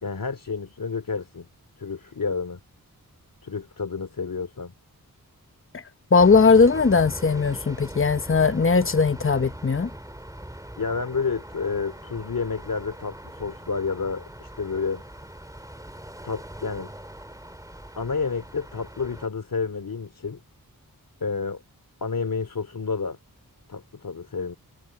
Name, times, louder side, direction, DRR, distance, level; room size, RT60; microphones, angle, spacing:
voice 1, 0.0-1.5 1.8-2.6 3.4-4.7 10.8-15.0 16.2-16.9 18.0-20.4 21.2-21.6 22.0-23.2 23.7-24.5, left 5 dB, 65° left, 2.8 m, -30 dB
voice 2, 6.1-9.9, left 4 dB, 35° left, 1.0 m, -19 dB
sound 1, 6.2-19.3, right 1 dB, 10° right, 3.5 m, -41 dB
wide cardioid pair, 85°, 35 cm